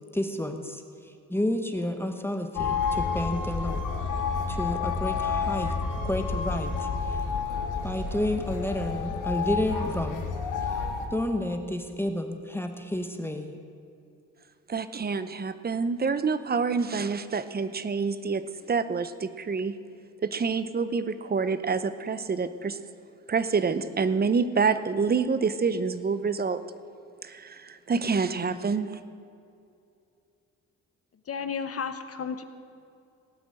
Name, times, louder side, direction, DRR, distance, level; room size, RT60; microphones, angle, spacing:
voice 1, 0.1-3.8 4.5-5.7 6.0-7.2 7.8-10.2 11.1-13.6, left 1 dB, 5° left, 5 dB, 1.1 m, -30 dB
sound 1, 2.6-11.1, left 5 dB, 75° left, 1.9 m, -30 dB
voice 2, 14.7-18.4 18.7-19.7 20.2-22.8 23.3-26.6 27.2-29.0, right 5 dB, 30° right, 12 dB, 0.8 m, -27 dB
voice 3, 31.3-32.4, left 6 dB, 50° left, 9 dB, 1.0 m, -33 dB
17.5 x 6.1 x 8.8 m, 2.6 s
cardioid pair, 85°, 31 cm